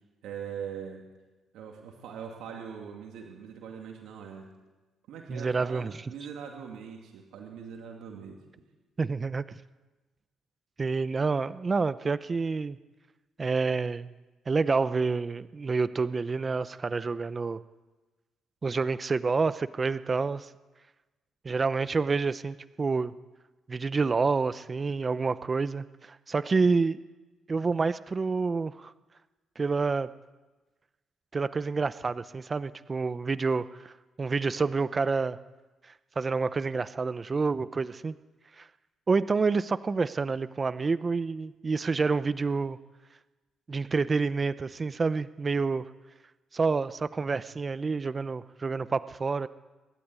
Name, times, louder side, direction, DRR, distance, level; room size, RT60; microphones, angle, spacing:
voice 1, 0.2-1.0 1.5-4.5 5.1-8.4, right 7 dB, 85° right, 1 dB, 2.5 m, -41 dB
voice 2, 5.3-6.1 9.0-9.6 10.8-12.8 13.4-14.1 14.5-17.6 18.6-20.5 21.4-23.1 23.7-27.0 27.5-28.9 29.6-30.1 31.3-33.9 34.2-35.4 35.8-38.2 38.6-38.7 39.1-42.8 43.7-45.9 46.5-49.5, right 4 dB, 30° right, 14 dB, 0.7 m, -28 dB
25.5 x 12.5 x 9.8 m, 1.2 s
cardioid pair, 90°, 0 cm